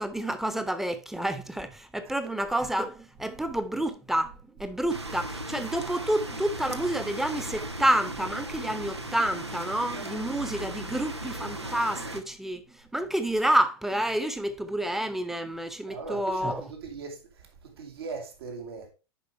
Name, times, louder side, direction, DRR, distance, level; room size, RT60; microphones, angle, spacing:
voice 1, 0.0-12.6 12.9-16.6, right 1 dB, ahead, 0.9 m, -29 dB
sound 1, 4.9-12.2, right 1 dB, 90° right, 0.9 m, -37 dB
voice 2, 15.9-18.9, right 4 dB, 65° right, 2.1 m, -39 dB
10.0 x 5.2 x 3.3 m
figure-of-eight pair, 90°, 14 cm